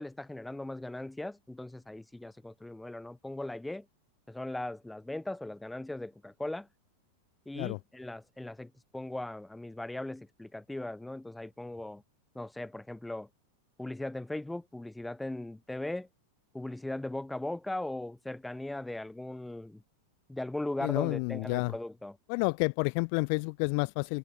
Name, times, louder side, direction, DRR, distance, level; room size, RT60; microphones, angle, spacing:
voice 1, 0.0-3.9 4.3-6.7 7.5-12.0 12.3-13.3 13.8-16.1 16.5-19.8 20.3-22.2, left 1 dB, 5° left, 2.2 m, -38 dB
voice 2, 20.8-21.7 22.3-24.2, left 40 dB or more, 45° left, 1.7 m, -30 dB
figure-of-eight pair, 90°, 0 cm